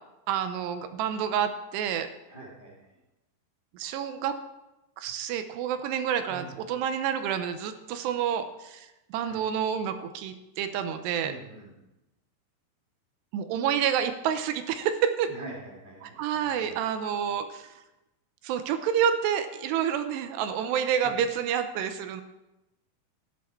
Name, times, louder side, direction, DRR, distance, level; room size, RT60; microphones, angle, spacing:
voice 1, 0.3-2.1 3.7-4.4 5.0-11.3 13.3-15.3 16.0-17.7 18.4-22.2, right 8 dB, 80° right, 9 dB, 2.7 m, -29 dB
voice 2, 2.3-2.9 6.3-6.5 9.2-9.4 11.2-11.7 15.3-16.8 21.0-21.2, right 2 dB, 35° left, -4 dB, 0.7 m, -45 dB
13.0 x 11.0 x 4.3 m, 0.97 s
omnidirectional pair, 5.1 m